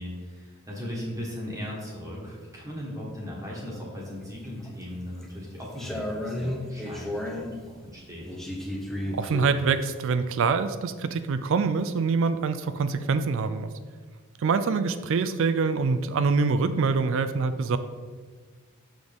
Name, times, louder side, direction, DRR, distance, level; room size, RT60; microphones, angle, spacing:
voice 1, 0.0-7.1 7.3-7.5 7.8-8.3, equal, 15° right, -4 dB, 1.4 m, -37 dB
sound 1, 4.1-4.7 5.2-7.6 8.3-9.6, left 1 dB, ahead, 0.7 m, -33 dB
voice 2, 9.1-13.7 14.4-17.8, right 4 dB, 60° right, 11 dB, 0.4 m, -25 dB
6.8 x 6.2 x 3.5 m, 1.5 s
head